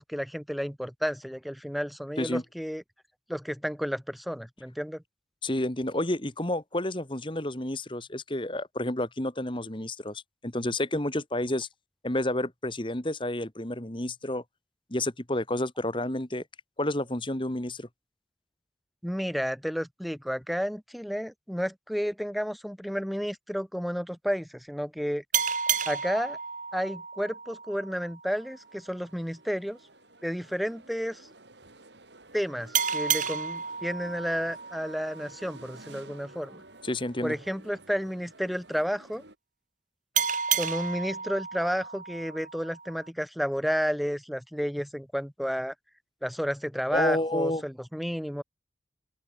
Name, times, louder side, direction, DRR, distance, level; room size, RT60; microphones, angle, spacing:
voice 1, 0.0-2.8 3.3-5.0 19.0-25.2 25.8-26.4 26.7-29.8 30.2-31.3 32.3-36.6 37.2-39.2 40.6-45.7 46.2-48.4, equal, ahead, 1.6 m, -31 dB
voice 2, 5.4-11.7 12.0-14.4 14.9-16.4 16.8-17.9 36.8-37.3 46.9-47.6, left 1 dB, 30° left, 2.1 m, -30 dB
sound 1, 25.3-28.6 32.7-36.0 40.2-43.1, right 8 dB, 45° right, 4.0 m, -32 dB
sound 2, 28.3-39.4, right 2 dB, 85° right, 7.1 m, -53 dB
open air
head